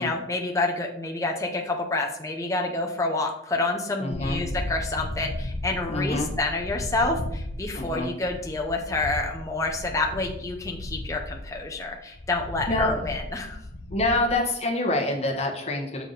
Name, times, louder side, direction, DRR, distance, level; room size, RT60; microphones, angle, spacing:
voice 1, 0.0-13.6, left 2 dB, 15° left, 1 dB, 0.7 m, -28 dB
voice 2, 4.0-4.4 5.9-6.3 7.7-8.1 12.7-13.1 13.9-16.1, left 2 dB, 35° left, -1 dB, 1.2 m, -26 dB
sound 1, 4.1-14.3, left 1 dB, 65° left, 0.6 m, -35 dB
6.7 x 4.7 x 4.0 m, 0.74 s
head